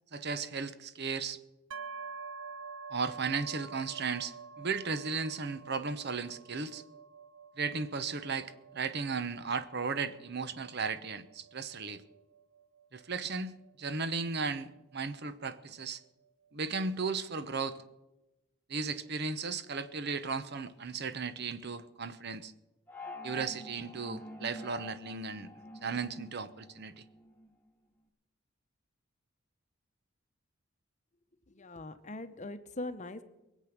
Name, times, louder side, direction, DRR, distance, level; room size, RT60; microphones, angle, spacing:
voice 1, 0.1-1.4 2.9-6.8 7.6-12.0 12.9-16.0 16.5-17.8 18.7-22.5 23.2-25.5 25.8-27.0, right 4 dB, 55° right, 12 dB, 0.9 m, -35 dB
sound 1, 1.7-15.4, right 4 dB, 85° right, 0.6 m, -49 dB
sound 2, 22.9-27.5, left 1 dB, 10° left, 1.1 m, -47 dB
voice 2, 31.6-33.2, left 2 dB, 35° left, 10 dB, 0.9 m, -41 dB
22.5 x 8.3 x 6.0 m, 0.97 s
head